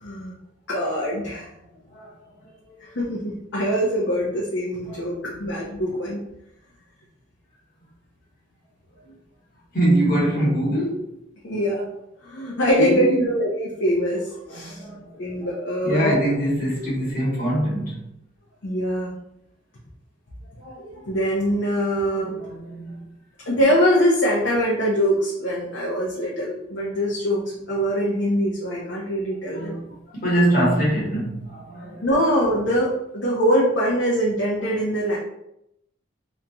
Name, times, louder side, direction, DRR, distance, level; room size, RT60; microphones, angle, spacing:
voice 1, 0.0-0.3 0.7-1.5 3.0-6.2 11.4-11.8 12.2-14.8 15.2-16.2 18.6-19.2 20.6-22.5 23.4-29.8 32.0-35.2, equal, 75° left, -5 dB, 0.6 m, -23 dB
voice 2, 4.7-5.5 9.7-11.1 12.8-13.3 14.5-15.5 15.8-18.1 22.2-23.1 29.5-32.1 35.0-35.2, right 1 dB, 45° left, -6 dB, 1.1 m, -24 dB
2.9 x 2.6 x 2.3 m, 0.80 s
head